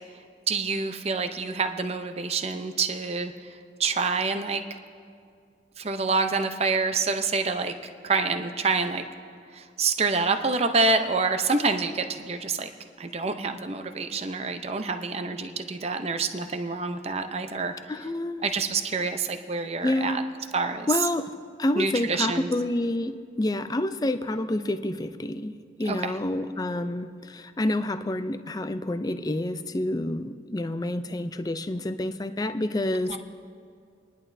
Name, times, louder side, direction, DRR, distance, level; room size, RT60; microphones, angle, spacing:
voice 1, 0.5-4.6 5.8-7.7 8.0-9.0 9.5-12.7 13.0-17.7 18.4-20.2 20.5-20.9 21.8-22.5 25.8-26.1 33.1-33.2, right 4 dB, 35° right, 7 dB, 0.6 m, -27 dB
voice 2, 17.9-18.5 19.8-20.2 20.9-21.3 21.6-33.2, left 1 dB, 20° left, 10 dB, 0.4 m, -28 dB
28.0 x 11.0 x 2.7 m, 2.3 s
head